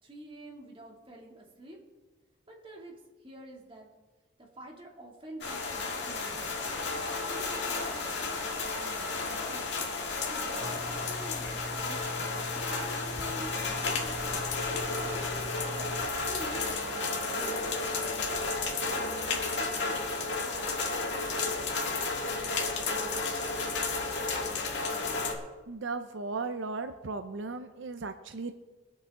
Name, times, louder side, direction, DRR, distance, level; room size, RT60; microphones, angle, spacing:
voice 1, 0.0-1.8 2.5-2.9 3.2-3.9 4.4-6.6 7.3-8.1 8.6-9.8 10.3-12.1 12.5-14.2 14.7-16.0 16.3-18.3 18.7-19.2 19.6-20.8 21.1-21.5 22.3-22.5, right 1 dB, 25° right, -2 dB, 2.5 m, -47 dB
sound 1, 5.4-25.3, left 3 dB, 60° left, 2.0 m, -32 dB
sound 2, 10.6-16.1, equal, ahead, 0.6 m, -42 dB
voice 2, 25.7-28.5, right 3 dB, 75° right, 8 dB, 0.6 m, -36 dB
22.5 x 8.1 x 3.7 m, 1.3 s
head